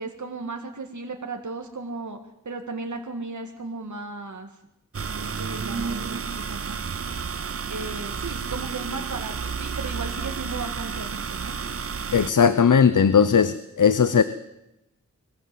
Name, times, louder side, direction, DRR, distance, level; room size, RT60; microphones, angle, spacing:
voice 1, 0.0-2.2 2.4-4.5 5.1-6.8 7.7-11.5, right 3 dB, 70° right, 4 dB, 1.8 m, -35 dB
sound 1, 4.9-12.3, right 6 dB, 50° right, 0.7 m, -31 dB
voice 2, 12.1-14.2, left 6 dB, 85° left, 13 dB, 0.8 m, -18 dB
22.0 x 15.5 x 7.7 m, 0.90 s
wide cardioid pair, 55°, 30 cm